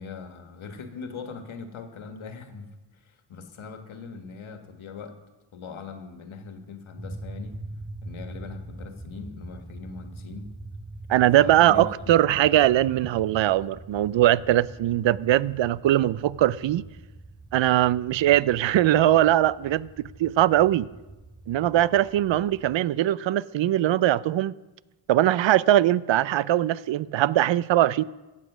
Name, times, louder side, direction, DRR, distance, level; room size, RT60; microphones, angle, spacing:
voice 1, 0.0-2.7 3.0-5.2 5.5-7.6 8.0-10.5 11.4-11.9 12.2-12.3 12.7-12.8, left 5 dB, 70° left, 1.7 m, -40 dB
sound 1, 7.0-22.8, right 2 dB, 10° right, 0.8 m, -43 dB
voice 2, 11.1-16.8 17.5-19.9 20.2-20.9 21.5-24.5 25.1-28.0, right 13 dB, 65° right, 0.5 m, -21 dB
15.0 x 8.5 x 6.1 m
cardioid pair, 80°, 50 cm